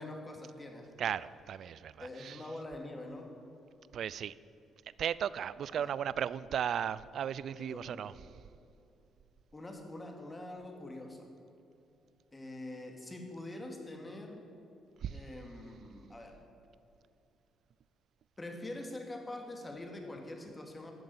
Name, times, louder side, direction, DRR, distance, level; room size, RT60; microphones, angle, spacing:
voice 1, 0.0-0.9 2.0-3.3 5.7-6.0 7.5-8.3 9.5-11.3 12.3-14.5 15.1-16.4 18.4-20.9, left 1 dB, 20° left, 3 dB, 2.4 m, -45 dB
voice 2, 1.0-2.4 3.9-4.3 5.0-8.1 15.0-15.2, right 9 dB, 65° right, 18 dB, 0.4 m, -35 dB
13.5 x 7.5 x 9.7 m, 2.7 s
cardioid pair, 90°, 0 cm